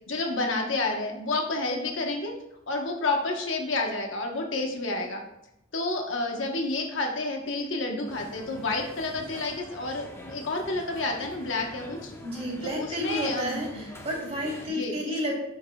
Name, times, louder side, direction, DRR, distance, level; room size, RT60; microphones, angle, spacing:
voice 1, 0.1-2.3 2.7-5.2 5.7-12.1 12.6-13.8 14.7-15.3, left 2 dB, 70° left, 2 dB, 1.1 m, -30 dB
sound 1, 8.1-14.7, left 1 dB, 10° left, 0.8 m, -45 dB
voice 2, 12.2-15.3, equal, 30° right, -3 dB, 2.2 m, -31 dB
11.0 x 4.7 x 2.3 m, 0.84 s
head